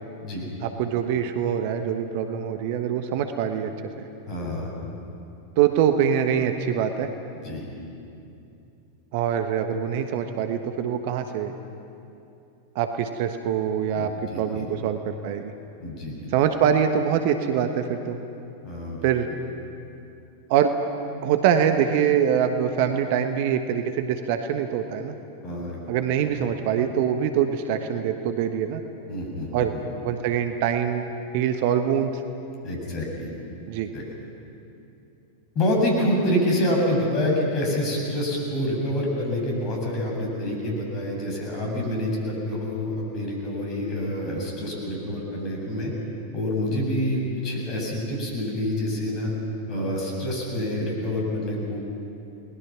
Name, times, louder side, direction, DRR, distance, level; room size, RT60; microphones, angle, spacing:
voice 1, 0.6-3.7 5.6-7.1 9.1-11.5 12.7-15.5 16.3-18.2 19.0-19.3 20.5-20.7 21.2-25.1 25.9-28.8 29.5-29.7 30.0-31.1 31.3-32.2 33.7-33.9, right 8 dB, 50° right, 7 dB, 1.3 m, -24 dB
voice 2, 4.3-4.7 7.4-7.7 13.9-14.6 15.8-16.3 18.6-19.0 25.4-25.8 29.1-29.8 32.6-33.3 33.9-34.0 35.6-45.9 46.3-49.3 49.7-51.8, left 1 dB, 35° left, -1 dB, 7.2 m, -27 dB
30.0 x 20.5 x 6.0 m, 2.7 s
figure-of-eight pair, 90°, 0 cm